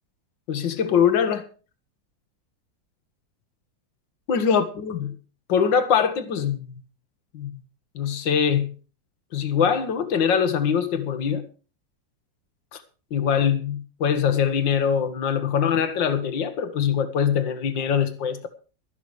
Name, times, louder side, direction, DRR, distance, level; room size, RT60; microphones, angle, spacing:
voice 1, 0.5-1.5 4.3-5.1 5.5-6.7 7.3-7.5 8.0-8.7 9.3-11.4 12.7-12.8 13.1-18.5, left 7 dB, 85° left, 2.0 m, -23 dB
12.5 x 12.0 x 4.8 m
omnidirectional pair, 2.0 m